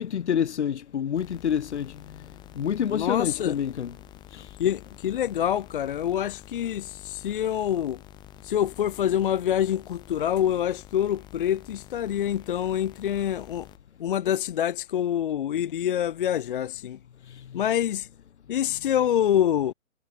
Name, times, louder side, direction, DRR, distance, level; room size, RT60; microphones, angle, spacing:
voice 1, 0.0-2.3 2.5-4.0 4.3-4.4, left 8 dB, 60° left, 1.1 m, -28 dB
sound 1, 1.1-13.8, left 13 dB, 10° left, 0.9 m, -48 dB
voice 2, 2.9-3.6 4.6-8.0 8.4-13.7 14.0-17.0 17.5-18.1 18.5-19.7, left 10 dB, 45° left, 0.6 m, -26 dB
figure-of-eight pair, 130°, 39 cm